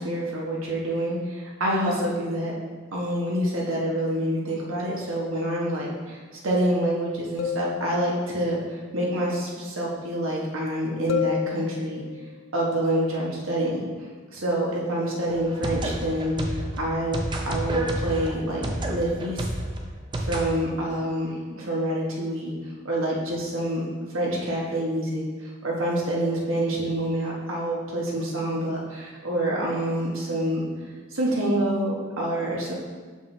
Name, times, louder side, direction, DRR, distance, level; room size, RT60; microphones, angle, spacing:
voice 1, 0.0-2.5 2.9-6.2 6.4-12.0 12.5-17.2 17.5-19.5 20.2-22.5 22.8-23.8 24.1-30.7 31.1-32.7, right 1 dB, 75° right, -3 dB, 1.3 m, -27 dB
sound 1, 5.1-5.8 7.4-8.5 11.1-12.4, left 8 dB, 70° left, 0.3 m, -31 dB
sound 2, 15.3-20.5, right 1 dB, 20° right, 0.5 m, -30 dB
5.9 x 5.3 x 3.3 m, 1.5 s
head